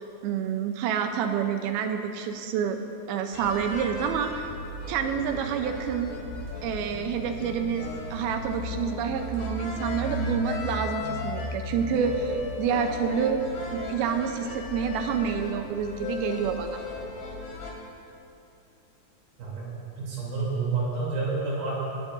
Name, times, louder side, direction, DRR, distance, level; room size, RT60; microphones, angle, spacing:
voice 1, 0.0-2.8 3.1-4.5 4.9-6.1 6.6-13.4 13.7-16.8, right 7 dB, 85° right, 6 dB, 2.5 m, -28 dB
sound 1, 3.3-17.7, left 3 dB, 90° left, 3.5 m, -35 dB
voice 2, 20.0-21.7, right 4 dB, 70° right, -6 dB, 4.9 m, -29 dB
19.5 x 12.0 x 2.6 m, 2.7 s
omnidirectional pair, 4.5 m